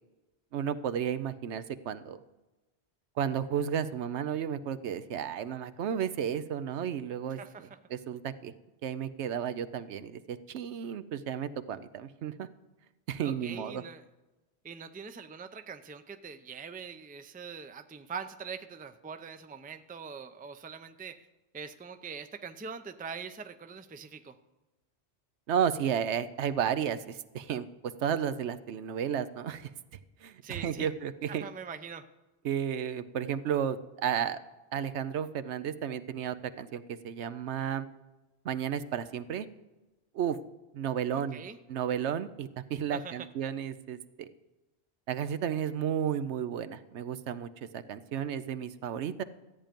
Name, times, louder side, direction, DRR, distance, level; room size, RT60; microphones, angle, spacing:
voice 1, 0.5-2.2 3.2-7.4 7.9-8.5 8.8-12.5 13.1-13.8 25.5-27.7 28.0-29.7 30.2-31.4 32.4-34.4 34.7-37.9 38.4-39.5 40.1-40.4 40.7-41.4 41.7-44.3 45.1-49.2, right 8 dB, 80° right, 12 dB, 1.0 m, -33 dB
voice 2, 7.4-7.8 13.2-14.0 14.6-21.3 21.5-24.4 30.4-30.9 31.3-32.1 41.1-41.6 42.9-43.3, right 6 dB, 15° right, 9 dB, 0.4 m, -43 dB
13.5 x 8.9 x 5.2 m, 1.1 s
omnidirectional pair, 1.1 m